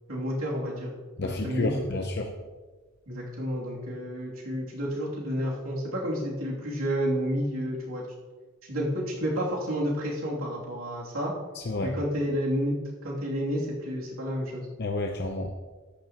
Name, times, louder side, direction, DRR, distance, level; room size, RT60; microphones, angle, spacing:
voice 1, 0.1-0.9 1.2-2.1 3.1-8.0 8.6-11.3 11.8-14.7, equal, 85° right, -4 dB, 2.7 m, -30 dB
voice 2, 1.2-2.3 11.7-11.9 14.8-15.5, left 2 dB, 50° left, 3 dB, 0.7 m, -30 dB
13.0 x 10.5 x 2.9 m, 1.3 s
head